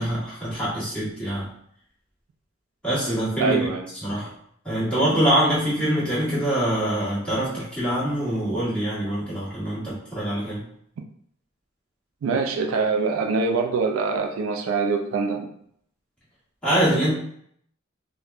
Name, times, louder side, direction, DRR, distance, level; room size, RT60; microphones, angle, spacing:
voice 1, 0.0-1.5 2.8-3.7 4.0-4.3 4.6-10.6 16.6-17.1, right 1 dB, 5° left, -10 dB, 1.3 m, -24 dB
voice 2, 3.4-3.9 12.2-15.5, right 4 dB, 75° right, 4 dB, 0.3 m, -24 dB
3.4 x 2.2 x 2.4 m, 0.68 s
head